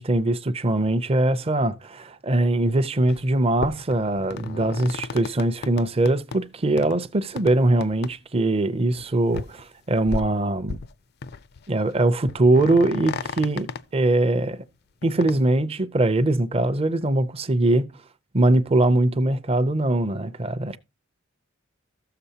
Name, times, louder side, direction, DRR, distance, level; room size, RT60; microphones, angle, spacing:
voice 1, 0.0-10.8 11.7-14.6 15.0-17.9 18.3-20.8, right 2 dB, 30° right, 0.5 m, -22 dB
squeaky floorboard, 3.0-3.2 3.6-6.4 6.8-7.0 7.4-7.5 7.8-8.1 8.4-8.5 9.0-9.1 9.3-9.6 10.0-10.9 11.2-11.6 11.9-12.0 12.2-13.8 15.0-15.3, left 4 dB, 55° left, 0.4 m, -33 dB
14.0 x 6.8 x 2.8 m
head